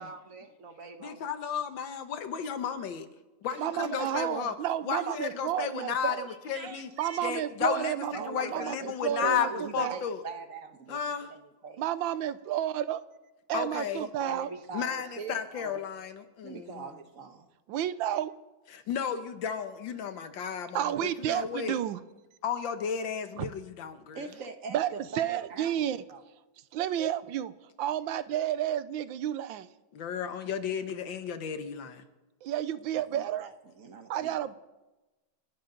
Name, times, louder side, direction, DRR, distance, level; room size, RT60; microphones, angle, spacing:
voice 1, 0.0-1.3 3.5-4.3 6.3-7.4 8.1-8.9 9.2-11.8 14.0-15.8 16.4-17.5 24.1-26.2 32.9-34.3, right 4 dB, 50° right, 7 dB, 1.4 m, -43 dB
voice 2, 1.0-3.1 3.4-4.6 4.9-6.9 7.2-9.5 9.7-10.2 10.9-11.3 13.5-14.0 14.7-16.8 18.7-20.8 21.2-21.8 22.4-24.2 29.9-32.0, left 7 dB, 80° left, 9 dB, 1.8 m, -33 dB
voice 3, 3.6-6.3 7.0-10.1 11.8-13.0 13.5-14.5 17.7-18.3 20.7-22.0 23.4-23.5 24.7-24.9 25.1-26.0 26.7-27.5 27.8-29.7 32.4-33.5 34.1-34.6, right 11 dB, 85° right, 14 dB, 1.5 m, -31 dB
30.0 x 11.5 x 3.9 m, 1.1 s
omnidirectional pair, 2.1 m